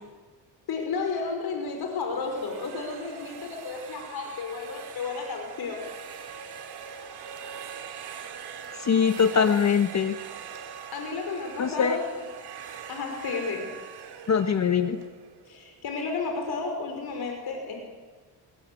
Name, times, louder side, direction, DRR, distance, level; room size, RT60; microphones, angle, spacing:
voice 1, 0.7-5.8 8.7-8.8 9.4-9.5 10.9-12.3 12.9-13.7 15.5-17.8, left 4 dB, 65° left, 3 dB, 5.5 m, -32 dB
sound 1, 2.0-15.9, right 7 dB, 70° right, 3.1 m, -42 dB
voice 2, 8.9-10.1 11.6-12.0 14.3-15.0, left 6 dB, 40° left, 9 dB, 1.3 m, -22 dB
24.0 x 20.5 x 8.6 m, 1.4 s
cardioid pair, 110°, 41 cm